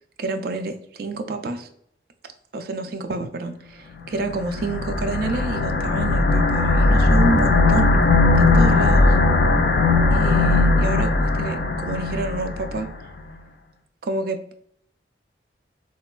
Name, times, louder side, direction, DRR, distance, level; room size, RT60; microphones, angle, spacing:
voice 1, 0.2-1.7 2.5-7.9 8.4-9.2 10.1-12.9 14.0-14.4, right 3 dB, 55° right, 7 dB, 0.3 m, -28 dB
sound 1, 4.2-12.9, left 3 dB, 65° left, 0.4 m, -18 dB
3.2 x 2.2 x 2.2 m, 0.70 s
head